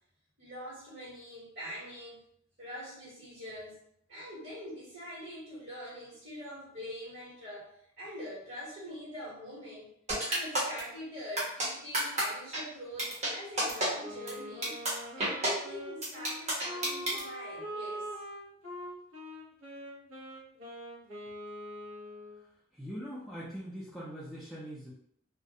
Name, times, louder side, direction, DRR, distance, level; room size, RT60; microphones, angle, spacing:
voice 1, 0.4-2.2 2.6-3.8 4.1-9.9 10.3-14.8 15.2-18.1, equal, 65° right, -8 dB, 1.3 m, -44 dB
sound 1, 10.1-10.8 11.4-11.7 11.9-12.2 12.5-12.6 13.0-13.3 13.6-13.9 14.3-14.4 14.6-14.9 15.2-15.5 16.0-17.2, right 1 dB, 35° right, 0.8 m, -29 dB
Wind instrument woodwind instrument, 14.0-22.4, equal, 85° right, 0.8 m, -43 dB
voice 2, 22.7-24.9, equal, ahead, -9 dB, 0.4 m, -42 dB
2.4 x 2.1 x 2.7 m, 0.70 s
head